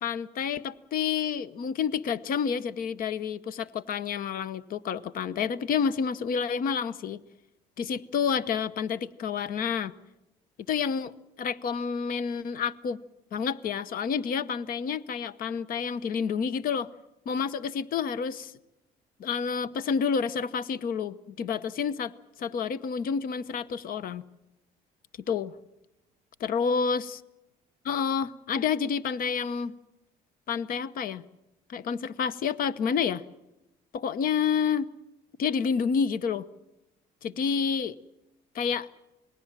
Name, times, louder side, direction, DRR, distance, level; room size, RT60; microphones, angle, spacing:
voice 1, 0.0-7.2 7.8-9.9 10.7-11.1 11.4-13.0 13.3-16.9 17.3-18.5 19.2-22.1 22.4-24.2 25.3-25.5 26.4-27.0 27.8-29.7 30.5-31.2 31.7-33.2 33.9-34.9 35.4-36.4 37.2-37.9 38.5-38.9, left 6 dB, 55° left, 16 dB, 0.9 m, -29 dB
27.5 x 20.0 x 7.4 m, 0.94 s
cardioid pair, 110°, 17 cm